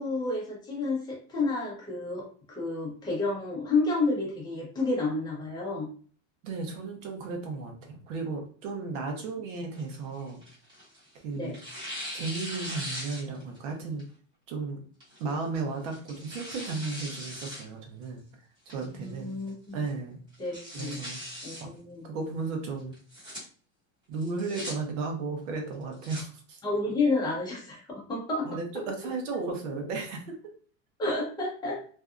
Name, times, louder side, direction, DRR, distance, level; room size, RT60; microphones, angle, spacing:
voice 1, 0.0-5.9 11.3-11.5 19.0-19.8 20.4-21.0 21.4-22.1 26.6-28.6 31.0-31.8, left 3 dB, 10° left, -3 dB, 0.6 m, -30 dB
voice 2, 6.4-10.4 11.2-11.5 12.1-14.0 14.5-14.8 15.2-18.2 18.7-19.4 19.7-20.2 20.7-21.2 21.6-21.7 22.0-22.9 24.1-26.6 28.4-30.4, right 4 dB, 70° right, 2 dB, 0.9 m, -34 dB
Tearing, 9.7-11.1 11.5-13.6 14.0-14.1 15.0-15.3 15.8-17.6 18.0-18.1 18.7-19.1 19.5-19.6 19.9-20.0 20.3-21.6 22.9-23.4 24.2-24.7 25.7-26.2, equal, 10° right, 1.0 m, -40 dB
2.7 x 2.3 x 2.3 m, 0.43 s
supercardioid pair, 165°, 38 cm